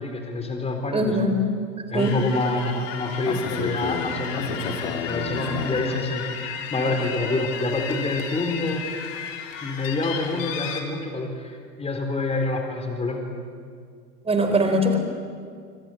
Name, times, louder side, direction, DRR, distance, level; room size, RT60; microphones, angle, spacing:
voice 1, 0.0-1.3 1.9-6.3 6.7-8.9 9.6-13.3, left 2 dB, 10° left, 5 dB, 4.1 m, -27 dB
voice 2, 0.9-1.4 1.9-2.2 14.2-15.0, right 1 dB, 10° right, 5 dB, 4.1 m, -21 dB
sound 1, 2.0-10.8, left 6 dB, 50° left, 3.8 m, -32 dB
26.5 x 25.0 x 8.5 m, 2.1 s
hypercardioid pair, 105°, 49 cm